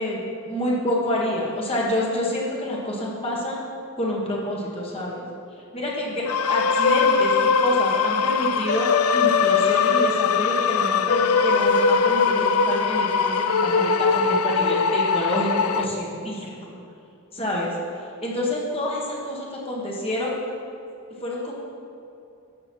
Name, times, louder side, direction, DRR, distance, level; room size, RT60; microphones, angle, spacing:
voice 1, 0.0-3.6 4.0-5.3 5.7-16.5 17.3-17.7 18.2-20.3 21.2-21.5, left 1 dB, 25° left, -4 dB, 1.7 m, -27 dB
sound 1, 6.3-15.8, left 5 dB, 90° left, 0.5 m, -21 dB
12.0 x 7.8 x 4.7 m, 2.6 s
head